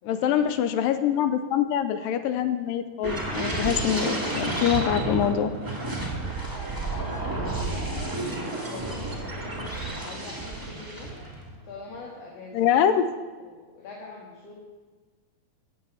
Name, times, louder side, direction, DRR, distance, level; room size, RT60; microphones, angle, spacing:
voice 1, 0.1-5.5 12.5-13.1, left 9 dB, 80° left, 10 dB, 2.2 m, -24 dB
sound 1, 3.0-11.5 11.9-12.2, right 2 dB, 10° right, 1.1 m, -31 dB
voice 2, 6.9-11.1 11.6-12.7 13.4-14.5, left 3 dB, 50° left, -3 dB, 2.6 m, -43 dB
15.5 x 7.8 x 7.0 m, 1.4 s
omnidirectional pair, 4.3 m